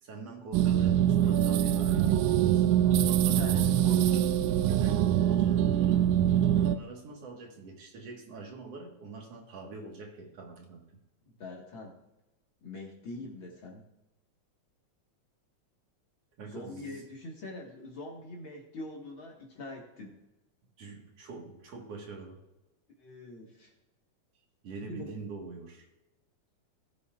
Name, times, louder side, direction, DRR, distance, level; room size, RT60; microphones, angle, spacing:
voice 1, 0.0-2.6 3.0-3.7 4.7-6.0 6.5-10.8 13.2-13.3 16.4-17.0 20.8-22.4 24.6-25.9, right 4 dB, 55° right, 1 dB, 2.5 m, -44 dB
sound 1, 0.5-6.8, right 10 dB, 80° right, 1.9 m, -24 dB
voice 2, 2.8-4.3 11.2-12.0 12.6-13.8 16.4-20.2 23.0-23.7 24.9-25.1, left 2 dB, 45° left, -1 dB, 2.1 m, -44 dB
18.0 x 8.2 x 2.4 m, 0.96 s
omnidirectional pair, 3.5 m